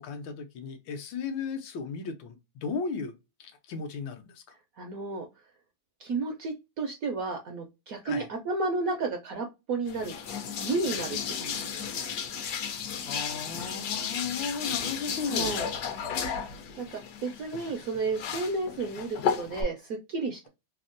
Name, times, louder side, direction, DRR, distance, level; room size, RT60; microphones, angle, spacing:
voice 1, 0.0-3.1 3.4-4.4 8.0-8.3 13.1-15.6, left 5 dB, 85° left, 1.4 m, -35 dB
voice 2, 4.8-5.2 6.0-10.1 10.6-11.9 15.3-15.7 16.8-20.5, right 3 dB, 75° right, 0.8 m, -32 dB
sound 1, 9.9-19.6, left 7 dB, 65° left, 1.0 m, -34 dB
3.5 x 2.1 x 2.5 m
omnidirectional pair, 2.0 m